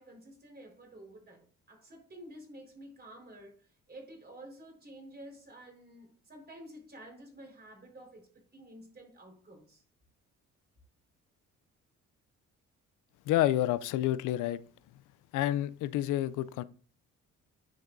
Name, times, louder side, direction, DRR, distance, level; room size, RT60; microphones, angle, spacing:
voice 1, 0.0-9.8, right 1 dB, 30° right, 4.4 m, -51 dB
voice 2, 13.3-14.6 15.3-16.6, left 13 dB, 85° left, 0.5 m, -29 dB
10.0 x 6.0 x 2.6 m
cardioid pair, 90°, 30 cm